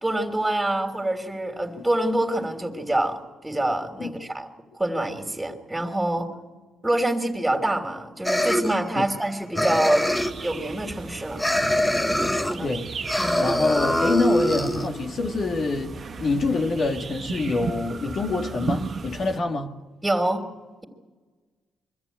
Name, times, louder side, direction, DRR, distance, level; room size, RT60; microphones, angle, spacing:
voice 1, 0.0-4.5 4.7-6.3 6.8-11.5 12.4-12.7 13.2-13.4 20.0-20.5, right 1 dB, 10° right, 3.2 m, -26 dB
sound 1, 8.2-9.3 9.5-10.5 11.4-12.6 13.0-14.9, left 1 dB, 10° left, 1.3 m, -23 dB
sound 2, 10.1-19.4, right 4 dB, 45° right, 1.4 m, -36 dB
voice 2, 12.6-12.9 13.4-19.8, left 3 dB, 55° left, 2.0 m, -26 dB
24.0 x 14.0 x 9.2 m
cardioid pair, 90°, 0 cm